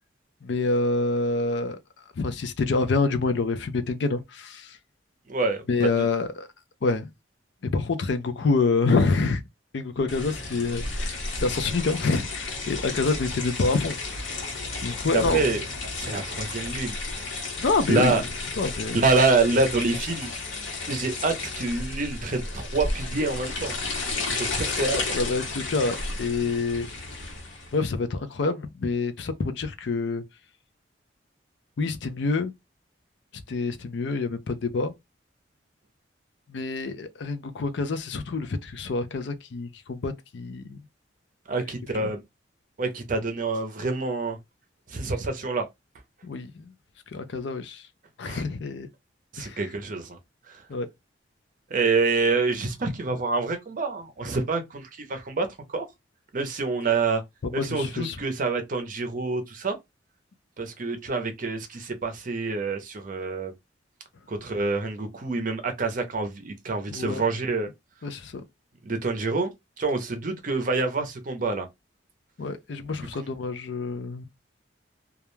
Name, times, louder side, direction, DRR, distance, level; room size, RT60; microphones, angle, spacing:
voice 1, 0.4-1.8 2.2-4.8 5.7-6.5 6.8-7.1 7.7-9.4 9.7-14.3 14.8-15.4 17.6-18.2 18.6-19.0 25.1-26.9 27.7-30.2 31.8-32.5 33.5-34.9 36.5-40.8 41.9-42.1 46.2-46.7 47.1-47.8 48.2-48.9 49.4-49.6 50.7-50.9 57.6-58.2 66.9-67.2 68.0-68.4 72.4-74.3, left 3 dB, 65° left, 0.4 m, -27 dB
voice 2, 5.3-6.1 15.1-15.6 16.0-17.0 17.9-18.2 18.9-20.3 20.9-23.8 24.3-25.2 41.5-42.2 42.8-44.4 44.9-45.6 48.2-48.4 49.3-50.2 50.5-50.6 51.7-55.9 56.3-57.2 57.5-59.8 60.6-63.5 64.3-67.7 68.8-69.5 69.8-71.7 73.1-73.3, right 3 dB, 45° right, 0.6 m, -27 dB
sound 1, 10.1-27.8, left 3 dB, 90° left, 1.0 m, -33 dB
2.3 x 2.1 x 3.0 m
head